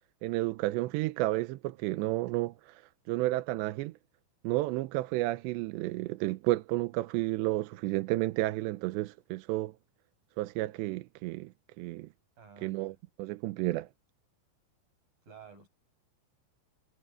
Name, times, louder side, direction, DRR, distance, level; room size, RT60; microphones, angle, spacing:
voice 1, 0.2-2.8 3.1-3.9 4.4-9.7 10.4-11.5 11.8-12.1 12.6-13.9, right 18 dB, 90° right, 2.9 m, -31 dB
voice 2, 12.4-12.9 15.2-15.7, right 6 dB, 50° right, 9.5 m, -52 dB
omnidirectional pair, 5.1 m